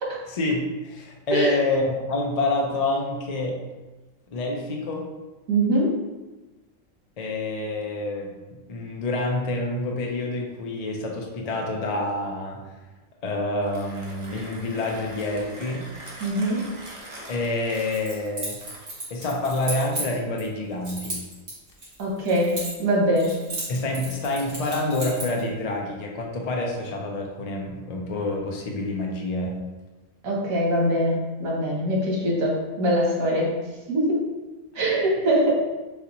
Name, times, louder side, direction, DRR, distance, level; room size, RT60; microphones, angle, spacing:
voice 1, 0.3-3.6 4.3-5.1 7.2-8.3 8.7-12.6 13.2-15.9 17.3-18.6 19.1-21.2 23.7-29.6, left 2 dB, 45° left, 0 dB, 0.5 m, -27 dB
voice 2, 5.5-5.9 16.2-16.6 22.0-23.3 30.2-33.5 33.9-34.2 34.7-35.5, right 1 dB, 90° right, -3 dB, 1.4 m, -23 dB
Mechanisms, 13.6-19.2, right 1 dB, 30° right, 0.6 m, -42 dB
Keys jangling, 17.7-20.5 20.8-22.9 23.2-25.4, right 1 dB, 60° right, 1.8 m, -34 dB
6.4 x 2.4 x 2.9 m, 1.2 s
omnidirectional pair, 1.4 m